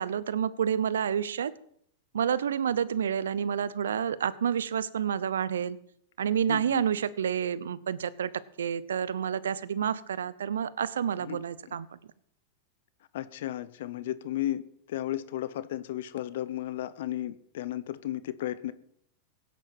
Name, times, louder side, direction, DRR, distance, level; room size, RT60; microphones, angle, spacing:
voice 1, 0.0-1.5 2.1-5.8 6.2-8.3 8.6-12.0, right 8 dB, 80° right, 18 dB, 0.7 m, -29 dB
voice 2, 6.5-6.8 11.3-11.4 13.1-14.6 14.9-18.7, left 13 dB, 70° left, 15 dB, 0.8 m, -34 dB
17.0 x 9.3 x 6.0 m, 0.68 s
hypercardioid pair, 100°, 0 cm